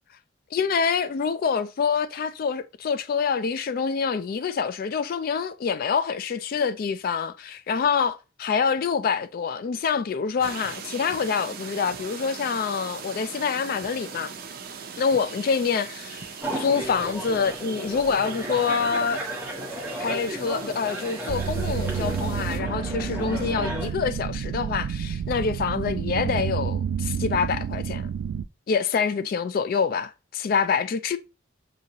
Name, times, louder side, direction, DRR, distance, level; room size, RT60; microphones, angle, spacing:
voice 1, 0.5-14.3 15.0-16.3 16.6-19.2 20.0-28.1 28.7-31.2, left 6 dB, 50° left, 0.3 m, -26 dB
sound 1, 10.4-22.6, right 6 dB, 50° right, 0.6 m, -40 dB
sound 2, 16.4-23.9, right 1 dB, 10° right, 1.1 m, -34 dB
sound 3, 21.3-28.5, right 7 dB, 85° right, 0.3 m, -29 dB
6.5 x 2.7 x 2.8 m
head